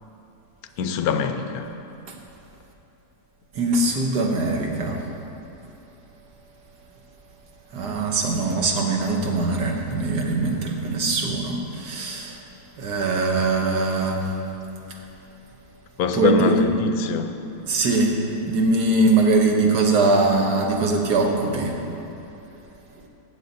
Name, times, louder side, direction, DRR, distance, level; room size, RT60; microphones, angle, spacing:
voice 1, 0.8-1.6 16.0-17.3, left 6 dB, 70° left, 8 dB, 1.1 m, -24 dB
voice 2, 3.5-5.0 7.7-12.4 12.8-14.2 16.1-16.7 17.7-18.2 18.5-21.7, right 3 dB, 80° right, 1 dB, 1.8 m, -21 dB
14.5 x 8.4 x 4.1 m, 2.9 s
omnidirectional pair, 1.7 m